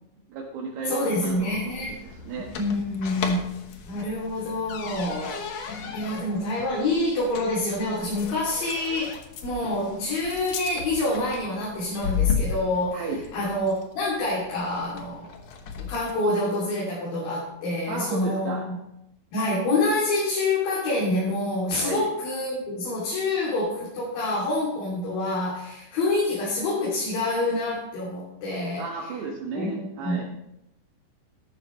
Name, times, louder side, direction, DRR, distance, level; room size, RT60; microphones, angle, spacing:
voice 1, 0.3-1.7 2.0-2.5 12.9-13.2 17.9-18.6 21.8-22.1 28.8-30.2, right 4 dB, 75° right, -3 dB, 3.5 m, -33 dB
voice 2, 0.8-2.0 2.6-3.4 3.9-15.3 15.8-18.8 19.3-28.8 29.5-29.7 30.0-30.2, left 2 dB, 60° left, -6 dB, 4.4 m, -27 dB
sound 1, 1.2-16.2, left 6 dB, 80° left, 1.4 m, -35 dB
13.5 x 12.0 x 3.2 m, 0.84 s
omnidirectional pair, 4.9 m